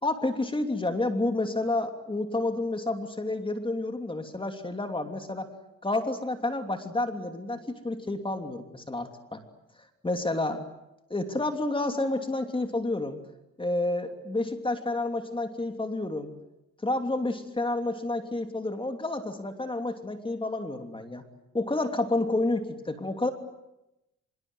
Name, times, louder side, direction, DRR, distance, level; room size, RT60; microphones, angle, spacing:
voice 1, 0.0-5.5 5.8-9.4 10.0-10.6 11.1-13.2 13.6-16.3 16.8-21.2 21.5-23.3, left 2 dB, 15° left, 6 dB, 3.0 m, -30 dB
25.5 x 23.0 x 9.4 m, 0.92 s
cardioid pair, 90°, 30 cm